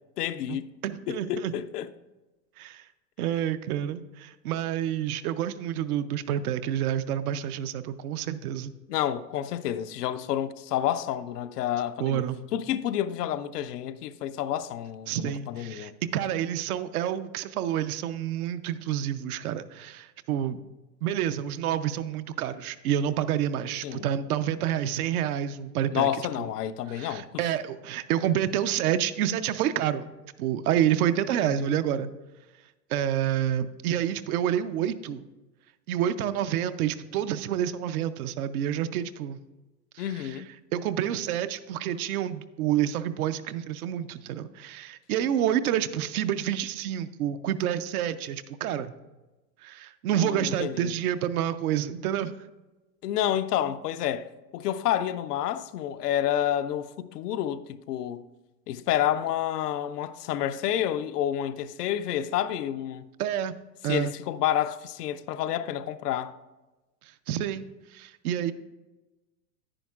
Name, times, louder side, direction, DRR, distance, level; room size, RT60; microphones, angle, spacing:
voice 1, 0.2-0.7 1.1-1.9 8.9-12.3 12.5-15.9 23.8-24.1 25.9-27.3 31.6-31.7 40.0-40.5 50.1-50.9 53.0-54.3 54.5-58.3 58.7-63.1 63.9-66.4, left 11 dB, 70° left, 0.6 m, -29 dB
voice 2, 0.8-1.5 2.6-2.9 3.2-8.7 12.0-12.4 15.1-20.6 21.0-26.1 26.4-26.5 26.9-30.1 30.4-32.1 32.9-35.3 35.9-39.4 39.9-40.4 40.7-48.9 49.6-52.3 63.2-63.5 63.8-64.1 67.0-68.5, right 10 dB, 60° right, 0.7 m, -28 dB
10.0 x 9.8 x 2.4 m
hypercardioid pair, 105°, 49 cm